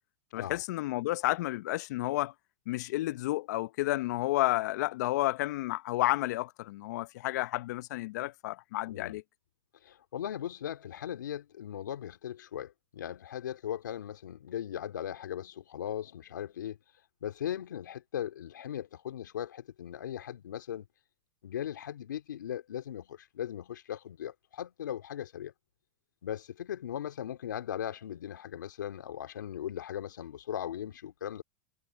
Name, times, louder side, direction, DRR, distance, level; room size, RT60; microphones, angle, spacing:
voice 1, 0.3-2.3 2.7-9.2, left 17 dB, 65° left, 0.7 m, -31 dB
voice 2, 8.9-9.2 9.8-16.8 17.2-20.9 21.4-25.5 26.2-31.4, left 10 dB, 85° left, 2.5 m, -38 dB
hypercardioid pair, 115°, 10 cm